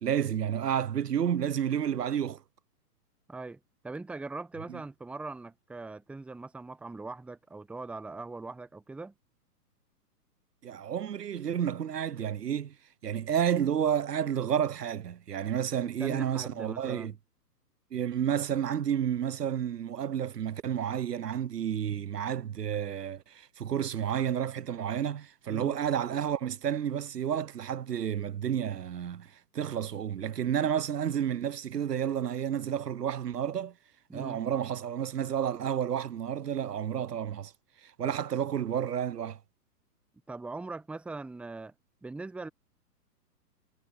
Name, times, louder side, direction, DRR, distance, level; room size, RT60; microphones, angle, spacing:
voice 1, 0.0-2.4 4.7-4.8 10.6-12.8 13.0-17.1 17.9-33.7 34.1-37.5 37.8-39.4, right 9 dB, 75° right, 0.7 m, -31 dB
voice 2, 3.3-9.1 15.8-17.2 25.5-25.8 34.1-34.4 38.0-38.1 40.3-41.7 42.0-42.5, right 3 dB, 5° right, 1.0 m, -41 dB
figure-of-eight pair, 120°, 48 cm